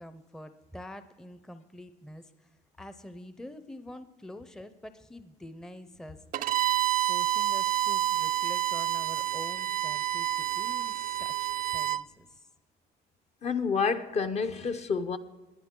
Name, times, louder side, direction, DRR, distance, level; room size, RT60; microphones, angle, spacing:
voice 1, 0.0-2.5 2.8-6.5 7.1-12.5, left 1 dB, 5° left, 0.6 m, -46 dB
Bowed string instrument, 6.3-12.0, right 14 dB, 55° right, 0.4 m, -28 dB
voice 2, 13.4-15.2, left 5 dB, 40° left, 0.8 m, -29 dB
20.5 x 10.0 x 3.8 m
cardioid pair, 110°, 17 cm